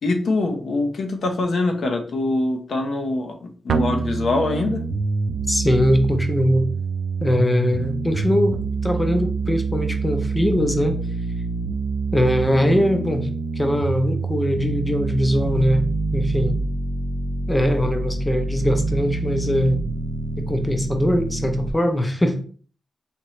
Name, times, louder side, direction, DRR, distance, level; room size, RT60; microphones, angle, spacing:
voice 1, 0.0-4.8, left 2 dB, 65° left, 3 dB, 0.8 m, -23 dB
sound 1, 3.7-21.7, right 3 dB, 75° right, 0.4 m, -26 dB
voice 2, 5.5-6.7 7.2-11.0 12.1-13.3 13.6-15.9 16.1-16.5 17.5-19.8 20.4-22.4, equal, 15° left, 5 dB, 0.6 m, -21 dB
4.2 x 2.9 x 3.1 m, 0.42 s
wide cardioid pair, 105°, 0 cm